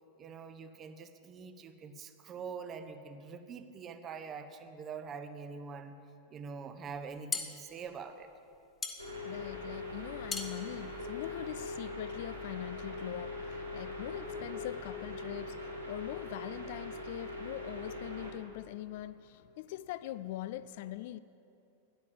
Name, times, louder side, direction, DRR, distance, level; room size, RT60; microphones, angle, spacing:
voice 1, 0.2-6.0 6.3-8.3, right 5 dB, 30° right, 1.1 m, -44 dB
sound 1, 6.9-11.9, left 5 dB, 15° left, 1.5 m, -41 dB
sound 2, 9.0-18.3, left 2 dB, 85° right, 2.4 m, -41 dB
voice 2, 9.2-21.2, left 14 dB, 50° left, 0.4 m, -42 dB
16.0 x 11.0 x 7.6 m
figure-of-eight pair, 90°, 0 cm